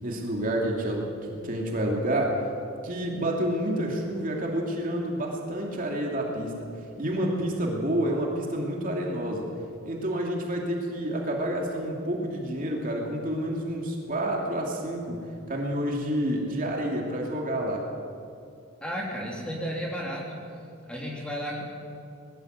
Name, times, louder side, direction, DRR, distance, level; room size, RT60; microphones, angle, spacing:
voice 1, 0.0-2.4 2.8-6.7 7.0-9.5 9.8-17.9, right 1 dB, 40° right, -1 dB, 2.7 m, -29 dB
voice 2, 18.8-20.3 20.9-21.6, equal, 5° left, -3 dB, 3.5 m, -33 dB
20.5 x 13.5 x 9.5 m, 2.6 s
head